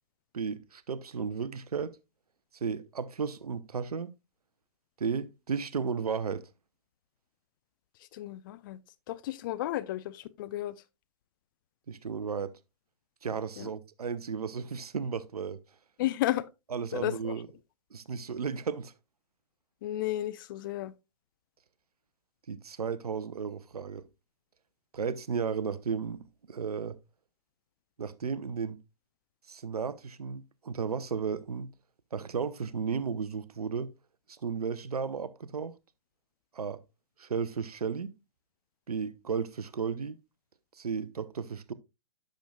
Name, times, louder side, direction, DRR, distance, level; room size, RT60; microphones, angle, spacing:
voice 1, 0.3-2.0 2.6-4.1 5.0-6.5 11.9-12.5 13.2-15.6 16.7-17.5 17.9-18.9 22.5-24.0 24.9-27.0 28.0-28.8 29.5-31.7 32.1-33.9 34.3-35.7 36.5-36.8 37.2-38.1 38.9-40.2 40.8-41.7, right 6 dB, 75° right, 0.7 m, -34 dB
voice 2, 8.1-8.8 9.1-10.8 13.6-13.7 16.0-16.4 16.9-17.3 19.8-20.9, left 14 dB, 35° left, 0.5 m, -33 dB
10.0 x 6.5 x 2.3 m
figure-of-eight pair, 120°, 20 cm